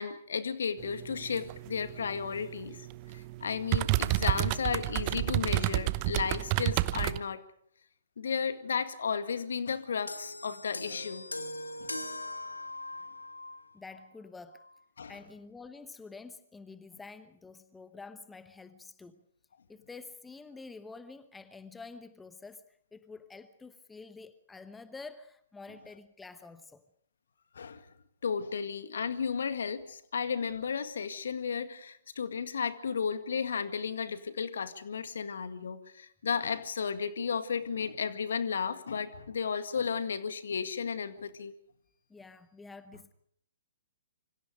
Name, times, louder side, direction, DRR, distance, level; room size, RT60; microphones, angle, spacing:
voice 1, 0.0-2.9 3.1-7.4 8.2-11.3 11.8-11.9 15.0-15.2 27.5-27.8 28.2-41.5, left 6 dB, 60° left, 1.9 m, -34 dB
sound 1, 0.8-7.2, right 19 dB, 35° right, 0.9 m, -31 dB
sound 2, 10.1-13.7 14.6-14.7, left 2 dB, 80° left, 2.0 m, -40 dB
voice 2, 13.7-14.6 15.1-19.2 19.7-22.6 22.9-26.8 42.1-43.1, left 4 dB, 10° left, 1.1 m, -48 dB
27.0 x 25.0 x 5.1 m
figure-of-eight pair, 120°, 0 cm